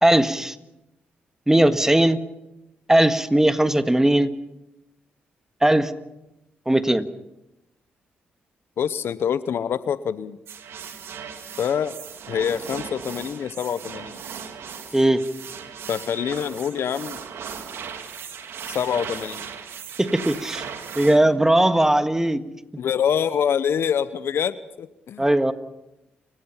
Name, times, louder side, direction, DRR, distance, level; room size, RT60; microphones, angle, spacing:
voice 1, 0.0-0.6 1.5-2.2 2.9-4.3 5.6-5.9 6.7-7.1 14.9-15.2 20.0-20.6 21.0-22.4 25.2-25.5, right 1 dB, 10° right, 9 dB, 1.7 m, -18 dB
voice 2, 8.8-10.4 11.6-12.0 12.3-14.2 15.9-17.2 18.7-19.5 22.8-25.2, left 8 dB, 70° left, 15 dB, 0.9 m, -25 dB
sound 1, 10.5-21.2, right 7 dB, 70° right, 2.5 m, -37 dB
30.0 x 16.0 x 5.8 m, 0.92 s
supercardioid pair, 50°, 4 cm